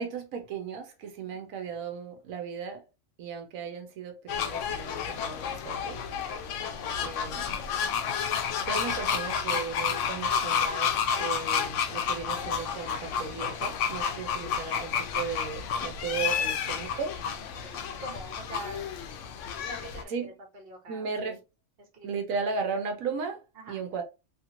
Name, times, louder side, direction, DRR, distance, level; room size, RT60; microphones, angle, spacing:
voice 1, 0.0-2.8 3.2-6.0 7.0-7.4 8.5-17.2 20.1-20.3 20.9-21.4 22.0-23.4 23.7-24.0, right 5 dB, 90° right, 1.1 m, -35 dB
sound 1, 4.3-20.0, left 7 dB, 70° left, 0.9 m, -31 dB
voice 2, 6.6-7.6 17.4-18.9 19.7-21.4 21.8-22.7 23.5-23.8, right 1 dB, 50° right, 1.1 m, -46 dB
2.9 x 2.8 x 2.5 m
omnidirectional pair, 1.4 m